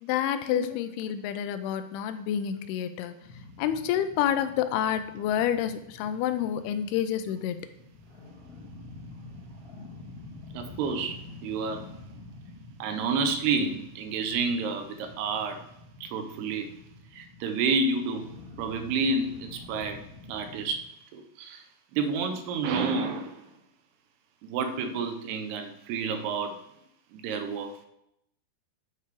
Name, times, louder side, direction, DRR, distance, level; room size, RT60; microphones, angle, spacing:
voice 1, 0.0-3.1 3.6-7.6, left 10 dB, 85° left, 10 dB, 2.5 m, -28 dB
sound 1, 3.2-20.8, left 2 dB, 45° left, 1.2 m, -47 dB
voice 2, 10.5-11.9 12.8-15.7 16.0-16.7 17.1-18.3 18.6-21.6 21.9-23.5 24.4-26.6 27.1-27.8, right 4 dB, 85° right, 7 dB, 2.8 m, -30 dB
8.1 x 5.8 x 4.7 m, 0.79 s
omnidirectional pair, 4.5 m